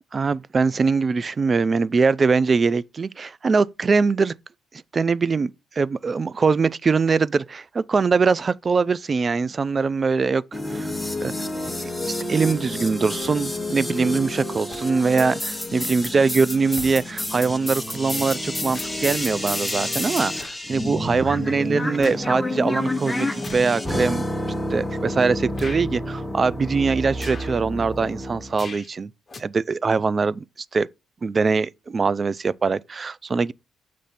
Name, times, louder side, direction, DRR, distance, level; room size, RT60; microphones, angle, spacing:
voice 1, 0.1-4.3 4.9-5.5 5.8-10.9 11.2-11.3 12.0-24.2 24.7-29.1 29.4-30.4 30.7-30.9 31.2-33.5, right 4 dB, 35° right, 0.3 m, -22 dB
sound 1, 10.5-28.5, left 1 dB, 10° left, 0.9 m, -29 dB
sound 2, 14.7-14.9 16.0-16.1 16.7-17.0 18.2-19.1 19.5-19.7 20.3-20.7 21.2-22.3 23.4-23.7 24.4-24.5 25.5-25.9 27.1-27.6 28.5-28.9 29.3-29.4, left 4 dB, 30° left, 1.1 m, -41 dB
6.8 x 3.1 x 5.7 m
cardioid pair, 90°, 0 cm